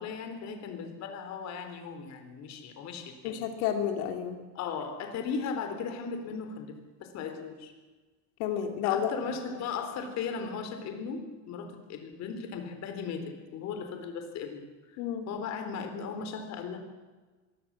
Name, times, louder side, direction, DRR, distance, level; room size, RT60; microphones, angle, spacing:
voice 1, 0.0-3.5 4.5-7.7 8.8-14.7 15.3-16.8, left 5 dB, 45° left, 6 dB, 3.8 m, -37 dB
voice 2, 3.2-4.4 8.4-9.1 15.0-15.3, left 9 dB, 80° left, 4 dB, 2.9 m, -30 dB
25.0 x 22.0 x 7.6 m, 1.3 s
cardioid pair, 170°, 37 cm